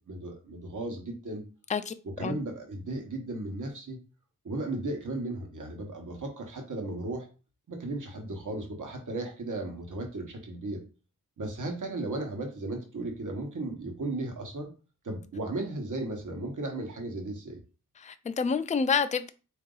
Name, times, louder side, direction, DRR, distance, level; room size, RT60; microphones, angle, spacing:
voice 1, 0.0-1.4 2.0-4.0 4.4-7.3 7.7-10.8 11.4-14.7 15.0-17.6, right 2 dB, 55° right, 1.1 m, -35 dB
voice 2, 18.0-19.3, left 6 dB, 20° left, 0.3 m, -28 dB
3.9 x 2.7 x 3.8 m
wide cardioid pair, 90°, 36 cm